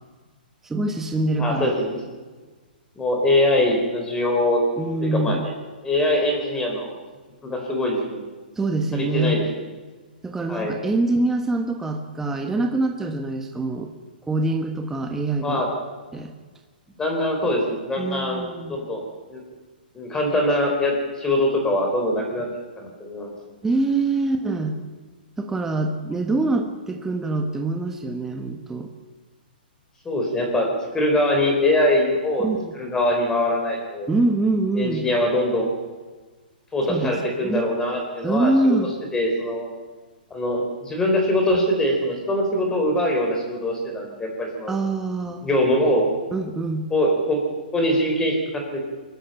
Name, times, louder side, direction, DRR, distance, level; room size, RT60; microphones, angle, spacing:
voice 1, 0.6-1.7 4.8-5.4 8.5-9.4 10.2-13.9 14.3-15.7 16.1-16.3 18.0-18.8 23.6-24.8 25.4-28.9 32.4-32.7 34.1-35.0 36.9-37.7 38.2-38.9 44.7-45.5 46.3-46.9, right 2 dB, 5° right, 4 dB, 1.3 m, -24 dB
voice 2, 1.4-2.0 3.0-4.6 5.0-5.5 5.8-6.9 7.4-8.2 8.9-9.4 10.5-10.7 15.4-15.7 17.0-18.4 18.7-19.0 19.3-19.4 19.9-22.5 22.8-23.3 30.1-30.7 30.9-32.5 32.7-34.1 34.8-35.7 36.7-38.5 39.1-39.7 40.3-44.7 45.4-46.1 46.9-47.4 47.7-48.8, left 1 dB, 10° left, 2 dB, 3.8 m, -22 dB
23.0 x 13.0 x 9.0 m, 1.3 s
hypercardioid pair, 145°, 5 cm